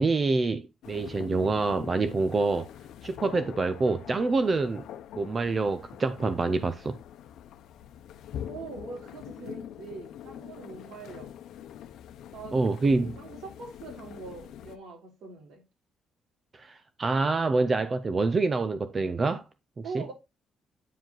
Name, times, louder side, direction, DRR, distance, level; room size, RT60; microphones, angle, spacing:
voice 1, 0.0-2.7 3.0-4.8 5.2-6.9 12.5-13.1 16.5-19.4 19.9-20.0, right 3 dB, 25° right, 0.5 m, -26 dB
sound 1, 0.8-14.8, left 10 dB, 75° left, 0.8 m, -44 dB
voice 2, 8.5-11.3 12.3-15.6 19.8-20.1, right 4 dB, 80° right, 3.5 m, -43 dB
9.0 x 5.0 x 3.9 m
cardioid pair, 155°, 0 cm